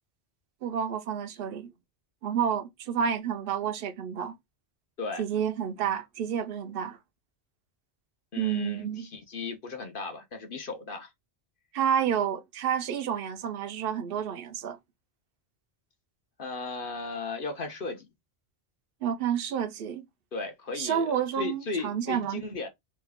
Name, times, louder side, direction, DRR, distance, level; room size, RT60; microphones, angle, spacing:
voice 1, 0.6-1.7 2.2-4.4 5.2-7.0 8.4-9.1 11.7-14.8 19.0-20.1 20.8-22.4, right 8 dB, 65° right, 0.7 m, -30 dB
voice 2, 8.3-11.1 16.4-18.1 20.3-22.7, left 3 dB, 55° left, 1.0 m, -36 dB
3.1 x 2.3 x 3.4 m
omnidirectional pair, 1.1 m